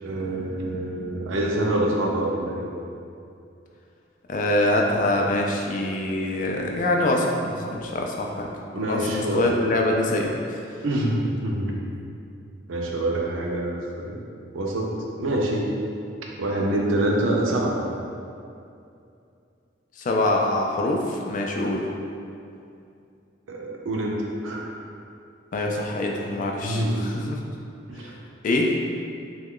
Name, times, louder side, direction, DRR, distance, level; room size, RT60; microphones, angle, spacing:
voice 1, 0.0-2.6 8.7-9.5 10.8-11.8 12.7-14.2 14.5-14.9 15.2-15.6 16.4-17.8 23.5-24.7 26.6-27.1 27.9-28.1, right 1 dB, 85° right, -1 dB, 0.5 m, -26 dB
voice 2, 4.3-8.5 8.8-10.6 20.0-21.8 25.5-27.4 27.9-28.1 28.4-28.7, left 1 dB, 40° left, 0 dB, 0.3 m, -24 dB
3.0 x 2.3 x 3.6 m, 2.5 s
head